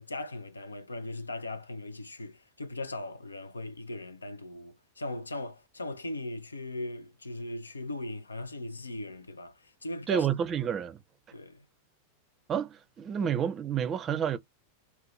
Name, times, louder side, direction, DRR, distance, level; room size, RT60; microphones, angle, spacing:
voice 1, 0.0-10.3 11.3-11.7 13.2-13.3, left 1 dB, 80° left, 0.4 m, -39 dB
voice 2, 10.1-11.0 12.5-14.4, right 8 dB, 25° right, 0.5 m, -29 dB
2.6 x 2.1 x 2.9 m
figure-of-eight pair, 90°, 0 cm